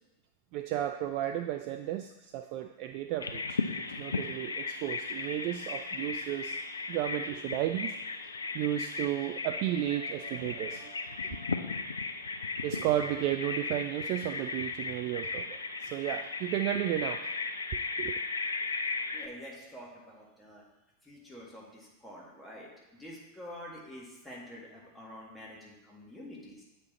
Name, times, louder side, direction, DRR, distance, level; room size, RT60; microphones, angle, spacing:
voice 1, 0.5-3.6 4.0-6.6 6.9-7.9 8.5-11.5 12.6-17.3 18.0-18.2, right 12 dB, 45° right, 7 dB, 0.3 m, -33 dB
Bird vocalization bird call bird song, 3.2-19.3, left 4 dB, 75° left, 0.4 m, -36 dB
voice 2, 19.1-20.6 21.0-26.6, left 1 dB, 5° left, -5 dB, 1.9 m, -47 dB
8.2 x 4.4 x 4.1 m, 0.99 s
figure-of-eight pair, 90°, 0 cm